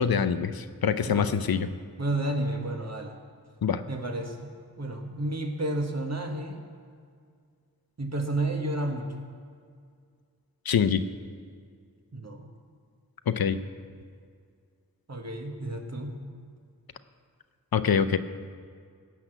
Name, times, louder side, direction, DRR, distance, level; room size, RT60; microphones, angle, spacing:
voice 1, 0.0-1.7 3.6-3.8 10.7-11.0 13.3-13.6 17.7-18.2, left 7 dB, 85° left, 11 dB, 0.6 m, -25 dB
voice 2, 2.0-3.1 3.9-6.6 8.0-9.1 12.1-12.5 15.1-16.2, right 1 dB, 45° right, 3 dB, 1.5 m, -31 dB
16.0 x 5.9 x 8.0 m, 2.1 s
wide cardioid pair, 70°, 35 cm